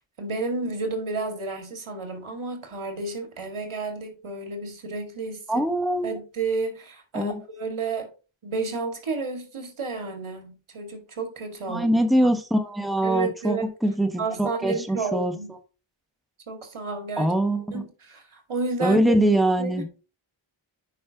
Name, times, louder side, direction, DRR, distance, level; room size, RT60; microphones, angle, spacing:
voice 1, 0.2-5.7 6.0-8.1 8.4-12.0 13.0-13.7 14.2-15.5 16.5-17.3 17.7-19.0 19.6-20.0, right 3 dB, 75° right, 2.1 m, -31 dB
voice 2, 5.5-6.2 7.1-7.4 11.7-13.6 13.8-15.3 17.2-17.8 18.8-19.9, right 1 dB, ahead, 1.2 m, -23 dB
9.6 x 5.4 x 2.9 m
cardioid pair, 55°, 50 cm